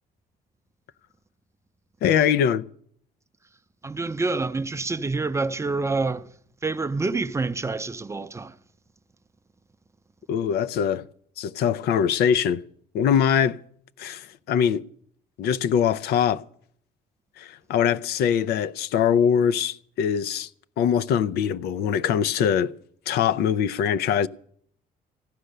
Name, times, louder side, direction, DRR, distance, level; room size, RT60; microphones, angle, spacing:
voice 1, 2.0-2.6 10.3-11.1 11.4-12.6 12.9-13.6 14.0-14.8 15.4-16.4 17.4-20.5 20.8-22.7 23.1-24.3, left 8 dB, 70° left, 0.5 m, -22 dB
voice 2, 3.8-6.3 6.6-8.6, right 3 dB, 15° right, 0.5 m, -27 dB
15.0 x 10.0 x 6.6 m
cardioid pair, 110°, 17 cm